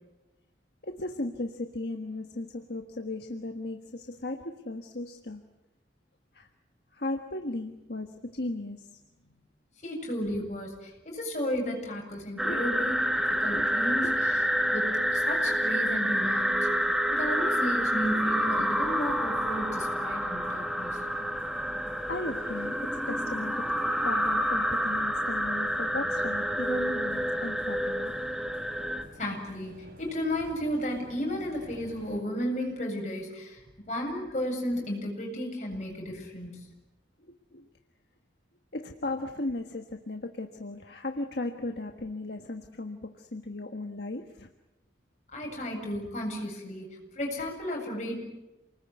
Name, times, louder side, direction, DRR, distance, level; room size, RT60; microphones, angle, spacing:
voice 1, 0.8-5.5 6.3-6.5 6.9-9.5 12.4-12.6 13.5-13.7 14.0-14.1 22.1-23.7 24.0-28.2 37.5-37.7 38.7-44.5, left 2 dB, 65° left, 5 dB, 1.5 m, -36 dB
voice 2, 9.8-14.4 14.7-16.8 17.1-21.0 29.2-36.6 45.3-48.2, equal, 40° left, 0 dB, 8.0 m, -33 dB
sound 1, 12.4-29.0, equal, ahead, 1.7 m, -28 dB
sound 2, 17.8-32.2, equal, 50° right, 5.2 m, -50 dB
29.0 x 20.5 x 9.5 m, 1.0 s
head